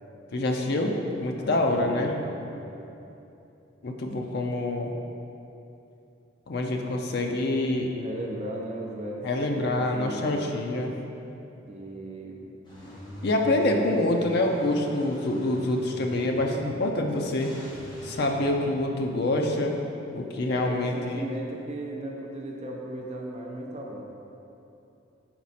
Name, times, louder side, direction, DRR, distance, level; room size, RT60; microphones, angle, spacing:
voice 1, 0.3-2.1 3.8-4.9 6.5-7.9 9.2-10.9 13.2-17.5 18.0-19.7 20.1-21.3, left 1 dB, 55° left, 2 dB, 0.5 m, -26 dB
voice 2, 1.3-2.7 8.0-10.5 11.6-12.5 13.3-14.2 20.5-24.0, right 1 dB, 35° right, -1 dB, 0.5 m, -37 dB
Car / Engine starting / Idling, 12.6-18.4, equal, 20° left, 1.1 m, -44 dB
6.0 x 4.1 x 4.1 m, 2.8 s
head